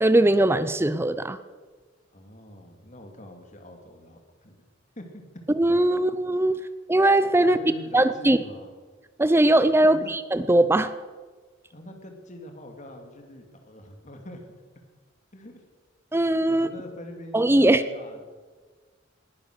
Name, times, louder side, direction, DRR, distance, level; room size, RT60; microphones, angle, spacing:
voice 1, 0.0-1.4 5.6-6.6 6.9-7.6 7.9-8.4 9.2-10.9 16.1-16.7 17.3-17.8, right 1 dB, 15° right, 13 dB, 0.5 m, -20 dB
voice 2, 2.1-4.7 5.0-5.2 5.9-6.0 6.5-6.7 7.4-8.7 9.8-10.1 11.7-14.5 15.3-15.6 16.5-18.2, left 1 dB, 40° left, 4 dB, 2.4 m, -44 dB
20.0 x 10.5 x 6.6 m, 1.4 s
head